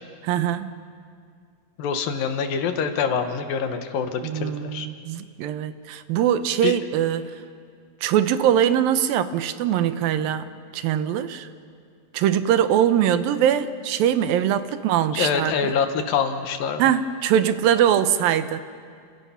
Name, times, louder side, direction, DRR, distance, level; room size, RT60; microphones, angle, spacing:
voice 1, 0.2-0.7 4.2-7.3 8.0-10.5 10.7-11.5 12.1-15.7 16.8-18.6, right 10 dB, 80° right, 11 dB, 2.6 m, -22 dB
voice 2, 1.8-4.9 6.6-6.8 15.1-16.8, left 6 dB, 75° left, 7 dB, 2.9 m, -25 dB
29.5 x 27.0 x 5.7 m, 2.2 s
omnidirectional pair, 4.2 m